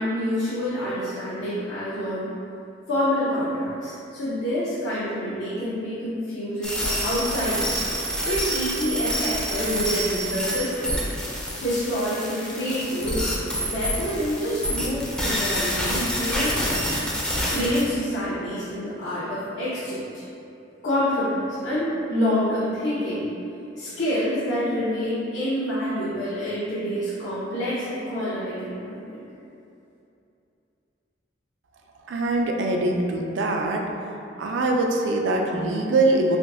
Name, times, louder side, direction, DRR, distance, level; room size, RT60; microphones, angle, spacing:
voice 1, 0.0-2.3 2.9-7.8 8.3-11.0 11.6-13.3 13.6-16.5 17.5-20.1 20.8-23.3 23.8-29.2, equal, 85° left, -12 dB, 0.7 m, -27 dB
sound 1, 6.6-17.8, equal, 5° left, 0.4 m, -27 dB
voice 2, 32.1-33.8 34.4-36.4, right 2 dB, 70° right, 1 dB, 0.4 m, -23 dB
3.5 x 2.6 x 2.5 m, 2.7 s
head